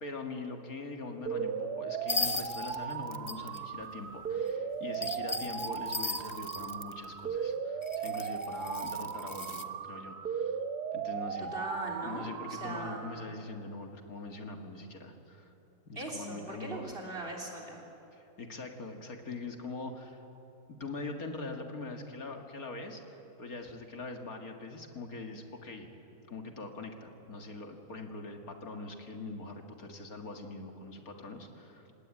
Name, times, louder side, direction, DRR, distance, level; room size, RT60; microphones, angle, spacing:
voice 1, 0.0-10.6 10.9-11.5 12.0-15.5 15.9-16.9 18.2-20.2 20.7-25.9 26.3-31.9, left 3 dB, 65° left, 3 dB, 2.4 m, -43 dB
sound 1, 1.3-13.3, right 7 dB, 85° right, 1.5 m, -37 dB
sound 2, 2.1-3.6 4.9-7.0 7.8-9.6, left 4 dB, 25° left, 0.6 m, -37 dB
voice 2, 11.4-13.0 16.0-17.8, right 2 dB, 35° right, 1 dB, 3.9 m, -40 dB
27.0 x 19.5 x 8.9 m, 2.9 s
omnidirectional pair, 1.7 m